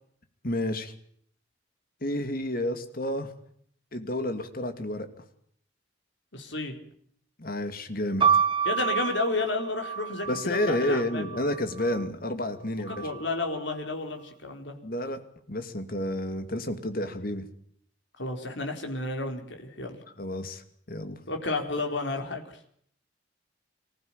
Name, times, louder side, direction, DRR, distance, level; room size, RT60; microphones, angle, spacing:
voice 1, 0.4-0.9 2.0-3.3 3.9-5.1 7.4-8.2 10.3-13.1 14.8-15.2 15.5-17.5 20.2-20.6 20.9-21.2, left 1 dB, 50° left, 9 dB, 2.6 m, -30 dB
voice 2, 6.3-6.8 8.6-11.4 12.9-14.7 18.2-20.0 21.3-22.7, left 2 dB, 70° left, 4 dB, 4.4 m, -32 dB
sound 1, 8.2-12.0 12.9-13.6, right 7 dB, 25° right, 1.2 m, -29 dB
25.0 x 15.0 x 8.9 m, 0.66 s
head